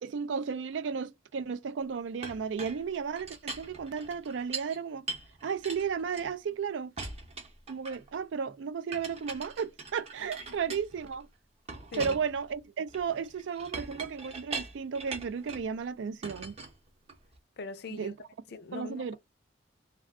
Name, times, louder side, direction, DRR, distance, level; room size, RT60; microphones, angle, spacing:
voice 1, 0.0-5.1 5.4-6.9 7.7-11.3 12.0-16.5 17.9-18.1 18.7-19.1, right 6 dB, 80° right, 0.4 m, -34 dB
Chink clink, 2.2-4.8 5.1-6.6 7.0-8.2 8.9-11.2 11.7-15.7 16.2-17.4, right 3 dB, 35° right, 0.7 m, -42 dB
voice 2, 17.6-18.1 18.5-19.1, left 4 dB, 60° left, 0.5 m, -41 dB
2.3 x 2.3 x 3.5 m
head